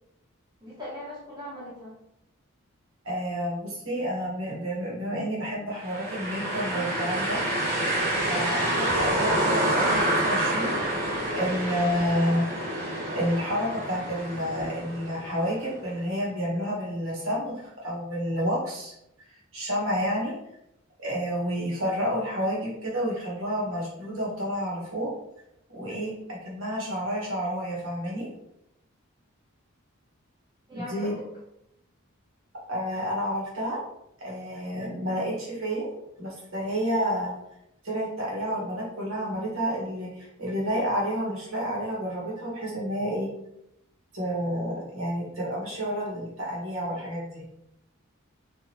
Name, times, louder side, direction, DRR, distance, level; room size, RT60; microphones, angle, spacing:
voice 1, 0.6-1.9 8.6-8.7 30.7-31.3 34.9-35.2, left 1 dB, 20° right, -7 dB, 0.9 m, -40 dB
voice 2, 3.0-7.4 8.3-10.7 11.3-12.5 13.1-18.9 19.5-20.3 21.0-25.1 25.7-28.3 30.7-31.2 32.7-33.8 34.2-35.9 36.2-37.3 37.8-43.3 44.1-47.4, equal, 65° right, -4 dB, 1.2 m, -30 dB
sound 1, 5.8-15.6, right 1 dB, 45° right, 1.1 m, -27 dB
2.7 x 2.6 x 2.9 m, 0.81 s
head